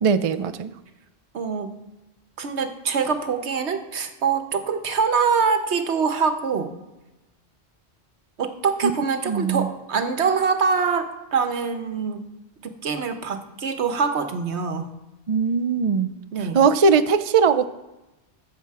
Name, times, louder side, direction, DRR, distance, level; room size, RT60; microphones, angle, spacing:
voice 1, 0.0-0.7 9.3-9.6 15.3-16.1 16.5-17.7, right 5 dB, 45° right, 12 dB, 0.4 m, -19 dB
voice 2, 1.3-1.7 2.4-6.7 8.4-12.2 12.6-14.9 16.3-16.6, right 5 dB, 80° right, 8 dB, 1.3 m, -24 dB
14.0 x 7.4 x 4.8 m, 1.0 s
omnidirectional pair, 1.1 m